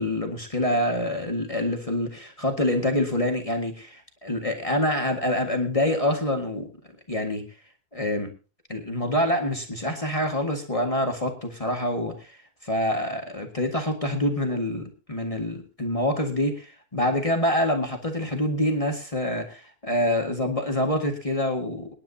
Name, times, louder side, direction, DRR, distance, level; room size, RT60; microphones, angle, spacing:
voice 1, 0.0-6.7 7.1-7.4 7.9-8.3 8.7-12.3 12.6-21.9, left 1 dB, 40° left, 3 dB, 0.5 m, -26 dB
27.0 x 10.5 x 2.8 m, 0.33 s
omnidirectional pair, 3.7 m